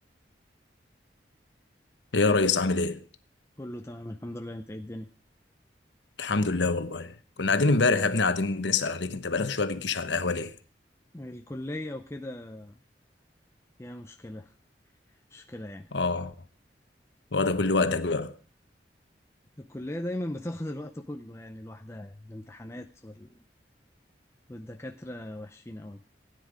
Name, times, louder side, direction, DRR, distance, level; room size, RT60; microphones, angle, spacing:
voice 1, 2.1-3.0 6.2-10.5 15.9-16.3 17.3-18.3, left 3 dB, 80° left, 1.0 m, -25 dB
voice 2, 3.6-5.1 11.1-12.8 13.8-14.5 15.3-15.9 19.6-23.4 24.5-26.0, left 1 dB, 15° left, 0.6 m, -38 dB
16.0 x 9.6 x 5.0 m
head